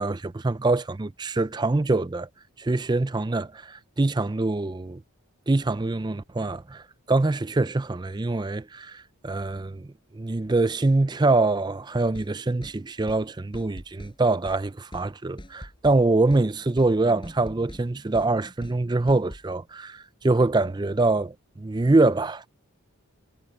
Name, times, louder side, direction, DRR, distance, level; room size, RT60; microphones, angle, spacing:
voice 1, 0.0-2.3 2.6-5.0 5.5-22.5, right 2 dB, 20° right, 0.4 m, -24 dB
sound 1, 12.1-12.3 12.6-12.8 13.1-13.2 13.5-14.2 14.5-14.6 14.9-15.1 15.4-16.0 16.3-16.5 16.8-16.9 17.2-17.8 18.1-18.3 18.6-18.8 19.1-19.5, equal, 20° left, 7.5 m, -42 dB
head